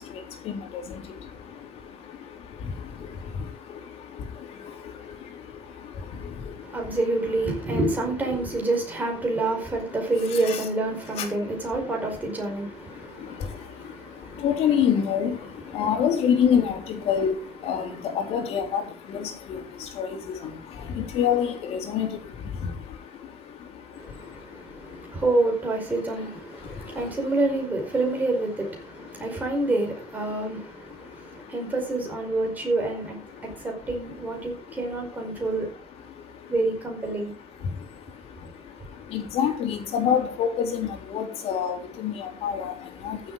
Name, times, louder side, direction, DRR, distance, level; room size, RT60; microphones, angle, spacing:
voice 1, 0.0-7.0 10.3-10.6 11.1-11.4 12.6-25.2 26.2-27.2 29.0-29.5 30.2-31.7 33.3-33.9 34.4-34.8 35.2-36.5 37.5-43.3, left 8 dB, 75° left, 3.6 m, -30 dB
voice 2, 6.6-14.4 23.9-35.7 36.5-37.3, right 2 dB, 15° right, 5.1 m, -28 dB
14.5 x 7.8 x 4.9 m
cardioid pair, 165°, 11 cm